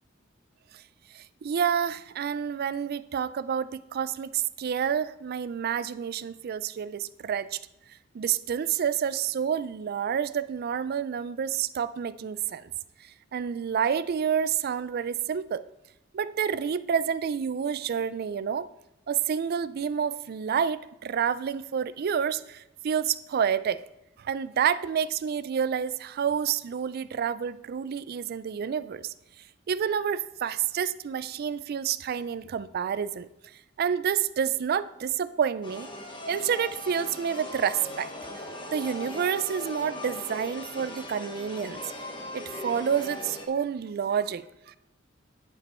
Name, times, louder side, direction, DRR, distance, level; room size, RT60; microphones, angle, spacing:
voice 1, 1.1-7.6 8.1-12.7 13.0-15.7 16.1-18.7 19.1-23.8 24.2-29.1 29.7-33.3 33.8-35.9 36.3-38.1 38.7-41.8 42.3-44.8, right 7 dB, 50° right, 16 dB, 0.3 m, -29 dB
sound 1, 35.6-43.5, left 2 dB, 25° left, 1.1 m, -39 dB
11.0 x 5.2 x 4.3 m, 0.91 s
head